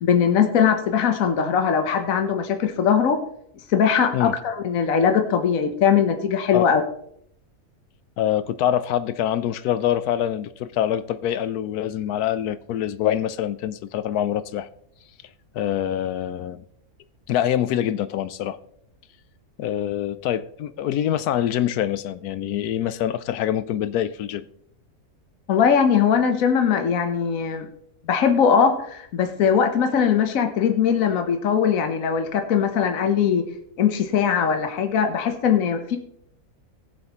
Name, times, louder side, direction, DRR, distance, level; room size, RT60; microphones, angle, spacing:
voice 1, 0.0-3.2 3.7-6.8 25.5-27.7 28.1-33.5 33.8-36.0, left 7 dB, 65° left, 1.4 m, -20 dB
voice 2, 8.2-14.7 15.5-16.6 17.3-18.6 19.6-24.5, left 11 dB, 85° left, 1.2 m, -25 dB
19.5 x 7.5 x 3.0 m
omnidirectional pair, 1.6 m